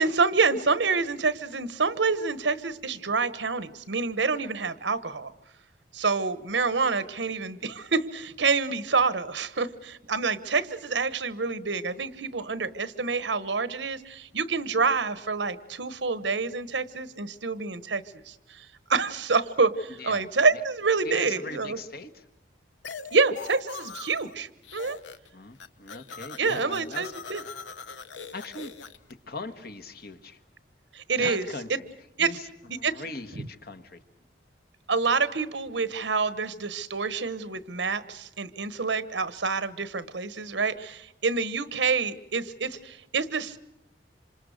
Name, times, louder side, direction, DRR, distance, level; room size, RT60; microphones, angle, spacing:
voice 1, 0.0-5.3 5.9-21.8 23.1-25.0 26.4-27.4 30.9-31.4 31.7-31.8 32.2-32.4 32.8-32.9 33.4-33.5 34.9-43.6, right 4 dB, 85° right, 14 dB, 1.2 m, -27 dB
voice 2, 19.9-20.3 20.5-20.6 21.0-22.2 25.3-27.6 28.3-28.7 29.3-30.4 31.2-31.9 32.2-32.5 32.8-34.0, left 3 dB, 60° left, 9 dB, 1.5 m, -40 dB
sound 1, 22.8-24.3 24.6-25.3 25.5-29.1, left 5 dB, 85° left, 1.0 m, -42 dB
27.0 x 26.5 x 6.5 m, 0.84 s
head